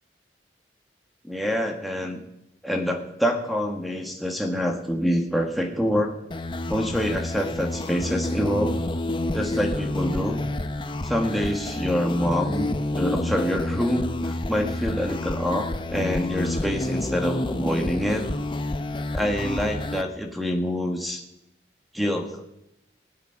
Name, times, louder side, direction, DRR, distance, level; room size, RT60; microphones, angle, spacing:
voice 1, 1.2-2.2 2.6-6.2 6.7-8.8 9.3-10.4 11.0-18.2 19.1-21.2 21.9-22.4, equal, ahead, 3 dB, 1.5 m, -26 dB
sound 1, 6.3-20.0, left 1 dB, 25° left, 0.7 m, -29 dB
20.0 x 8.3 x 5.8 m, 0.83 s
head